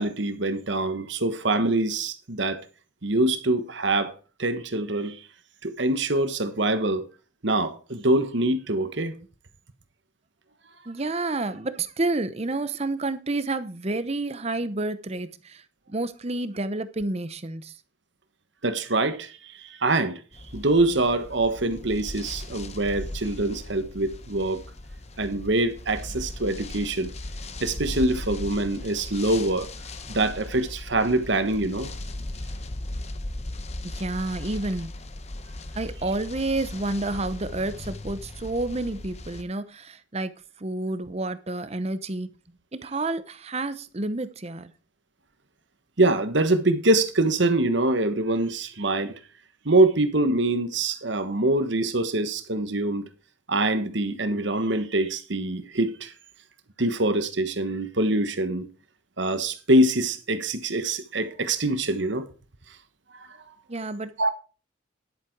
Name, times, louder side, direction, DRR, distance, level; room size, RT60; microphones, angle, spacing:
voice 1, 0.0-2.6 3.0-4.1 4.4-5.2 5.6-7.0 7.4-9.2 18.6-20.2 20.5-24.6 25.2-27.1 27.6-29.7 30.1-31.9 46.0-49.1 49.6-53.0 53.5-56.1 56.8-58.7 59.2-62.3 64.2-64.3, right 2 dB, 65° right, 1.4 m, -24 dB
voice 2, 10.9-17.8 33.8-34.9 35.7-42.4 42.7-44.7 63.7-64.3, right 2 dB, 30° right, 0.8 m, -30 dB
sound 1, 20.3-39.4, left 1 dB, 35° left, 0.9 m, -38 dB
10.5 x 8.5 x 4.7 m
head